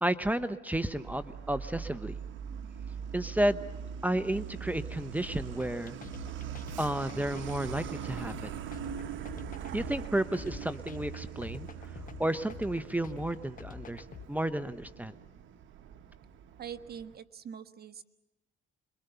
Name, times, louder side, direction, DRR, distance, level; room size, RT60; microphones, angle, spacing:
voice 1, 0.0-2.2 3.1-3.6 4.0-6.0 6.8-8.5 9.7-11.7 12.2-15.1, right 1 dB, 10° right, 12 dB, 0.9 m, -32 dB
Truck, 0.9-17.2, right 8 dB, 75° right, 1.3 m, -42 dB
sound 1, 5.6-14.3, left 9 dB, 45° left, 1.4 m, -47 dB
voice 2, 16.6-18.0, right 8 dB, 50° right, 10 dB, 1.5 m, -43 dB
26.5 x 22.5 x 6.9 m, 0.93 s
cardioid pair, 90°, 20 cm